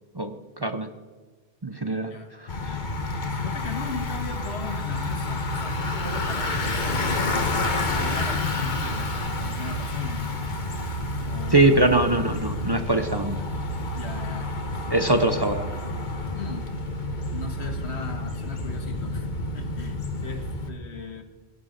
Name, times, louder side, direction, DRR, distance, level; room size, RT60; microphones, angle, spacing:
voice 1, 1.6-2.1 2.4-2.8 11.5-13.4 14.9-15.6, right 2 dB, 25° right, 7 dB, 0.7 m, -22 dB
Bicycle, 2.5-20.7, left 2 dB, 45° left, 1.4 m, -29 dB
voice 2, 3.3-7.3 7.8-10.4 11.3-11.7 13.9-14.9 16.3-16.7 17.1-19.3 19.5-21.2, left 4 dB, 80° left, 5 dB, 1.9 m, -37 dB
16.5 x 9.5 x 6.6 m, 1.3 s
omnidirectional pair, 1.1 m